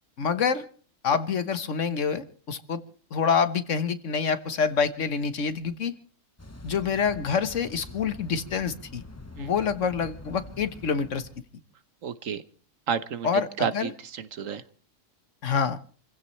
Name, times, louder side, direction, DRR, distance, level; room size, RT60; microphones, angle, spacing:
voice 1, 0.2-0.6 1.0-2.8 3.1-6.0 6.6-9.0 9.4-11.3 13.2-13.9 15.4-15.8, left 6 dB, 70° left, 11 dB, 1.6 m, -26 dB
sound 1, 6.4-11.4, left 2 dB, 15° left, 1.0 m, -45 dB
voice 2, 12.0-12.4 12.9-13.3 13.6-14.6, right 7 dB, 85° right, 13 dB, 1.5 m, -31 dB
28.5 x 16.0 x 3.2 m, 0.40 s
omnidirectional pair, 1.3 m